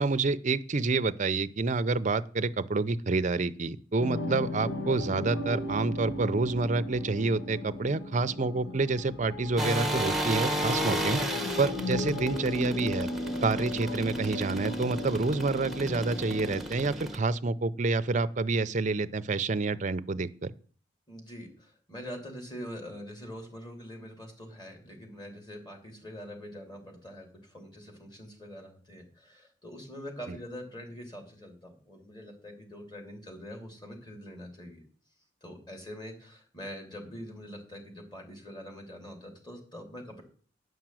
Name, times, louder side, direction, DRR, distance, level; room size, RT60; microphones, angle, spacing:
voice 1, 0.0-11.2 11.6-13.1 13.4-20.5 30.3-30.4, right 3 dB, 40° right, 12 dB, 0.6 m, -28 dB
sound 1, 4.0-16.6, left 1 dB, 70° left, 1.4 m, -36 dB
sound 2, 9.6-17.2, right 1 dB, ahead, 1.0 m, -33 dB
voice 2, 21.1-34.8 35.4-40.2, equal, 25° left, 2 dB, 3.1 m, -44 dB
9.4 x 6.0 x 7.6 m, 0.43 s
head